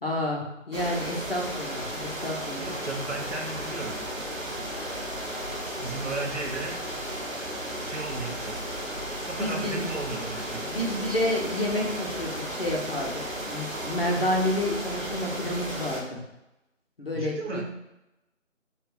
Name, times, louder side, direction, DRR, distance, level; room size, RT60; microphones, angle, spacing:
voice 1, 0.0-2.7 9.4-9.8 10.6-16.2 17.0-17.6, left 1 dB, 50° left, -2 dB, 0.7 m, -29 dB
sound 1, 0.7-16.0, equal, 90° right, 1.0 m, -34 dB
sound 2, 2.6-15.7, right 1 dB, 25° right, 1.2 m, -48 dB
voice 2, 2.6-3.9 5.8-6.8 7.8-8.5 9.2-10.7 17.1-17.6, right 3 dB, 65° right, 1 dB, 0.7 m, -35 dB
3.4 x 2.3 x 2.6 m, 0.92 s
figure-of-eight pair, 170°, 39 cm